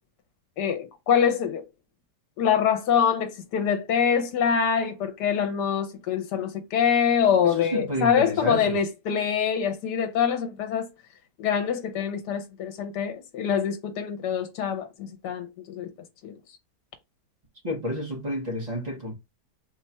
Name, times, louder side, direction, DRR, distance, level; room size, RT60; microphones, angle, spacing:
voice 1, 0.6-1.6 2.4-10.9 11.4-15.9 16.2-16.4, left 7 dB, 75° left, 1.4 m, -25 dB
voice 2, 7.4-8.8 17.6-19.1, equal, 30° right, 1.0 m, -30 dB
4.2 x 2.4 x 4.3 m
omnidirectional pair, 1.8 m